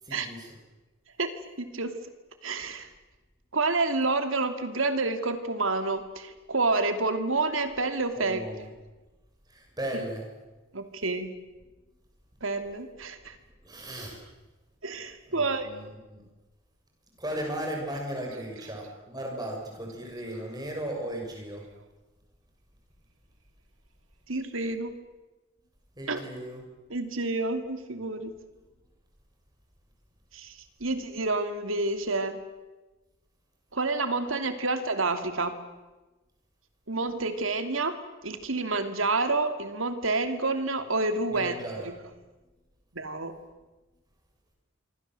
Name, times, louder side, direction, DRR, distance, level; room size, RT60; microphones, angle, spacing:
voice 1, 0.0-0.5 8.2-8.7 9.5-10.3 13.6-14.2 15.3-16.2 17.2-21.7 26.0-26.6 41.3-41.9, right 1 dB, 20° right, 1 dB, 6.8 m, -36 dB
voice 2, 1.6-1.9 2.4-2.9 3.5-8.6 9.9-10.0 10.7-11.3 12.4-13.3 14.8-15.8 18.6-18.7 24.3-25.0 26.1-26.2 26.9-28.4 30.3-32.4 33.7-35.5 36.9-38.0 38.2-42.1 42.9-43.3, right 3 dB, 80° right, 8 dB, 2.8 m, -29 dB
27.0 x 24.0 x 7.8 m, 1.2 s
head